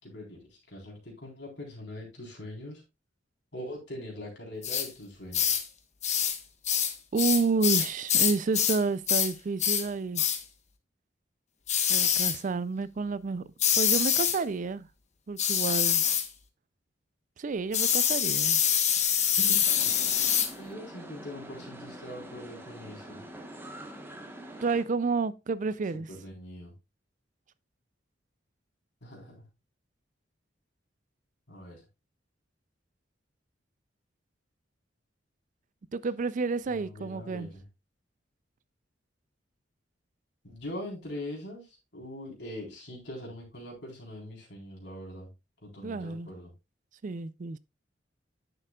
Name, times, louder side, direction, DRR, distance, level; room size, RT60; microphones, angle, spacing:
voice 1, 0.0-2.8 3.5-5.6 19.4-19.6 19.8-20.0 20.6-23.2 25.9-26.7 29.0-29.5 31.5-31.8 36.7-37.6 40.4-45.3 45.6-46.5, left 1 dB, 65° left, 3.9 m, -42 dB
sound 1, 4.6-4.9 5.3-5.7 6.0-6.4 6.7-8.8 9.1-9.3 9.6-9.9 10.2-10.4 11.7-12.4 13.6-14.4 15.4-16.3 17.7-20.5, left 8 dB, 40° left, 1.0 m, -25 dB
voice 2, 7.1-10.2 11.9-13.4 13.7-14.9 15.3-16.0 17.4-18.6 24.6-26.1 35.9-37.5 45.8-46.3 47.0-47.6, right 4 dB, 45° right, 0.4 m, -30 dB
sound 2, 19.6-24.8, right 1 dB, 10° right, 1.2 m, -45 dB
9.9 x 6.6 x 2.3 m
head